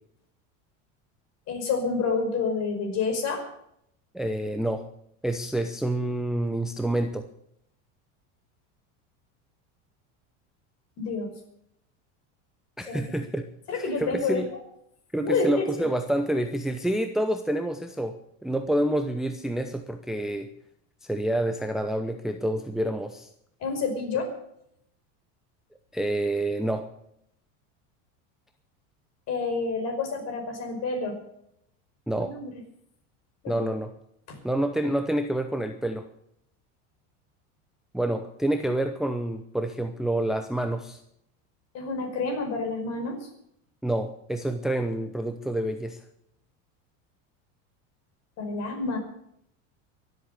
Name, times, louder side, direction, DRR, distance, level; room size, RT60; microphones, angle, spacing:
voice 1, 1.5-3.4 11.0-11.3 12.9-13.0 13.7-14.4 15.2-15.9 23.6-24.3 29.3-31.2 32.3-32.5 33.4-33.6 34.3-34.4 41.7-43.3 48.4-49.0, left 4 dB, 45° left, 4 dB, 5.3 m, -28 dB
voice 2, 4.1-4.9 5.2-7.3 12.8-13.4 13.7-14.5 15.1-18.2 18.4-20.5 21.0-23.3 25.9-26.9 32.1-32.3 33.5-33.9 34.4-36.1 37.9-41.0 43.8-46.0, right 1 dB, ahead, 7 dB, 0.7 m, -28 dB
23.0 x 8.2 x 6.8 m, 0.74 s
supercardioid pair, 145°, 35 cm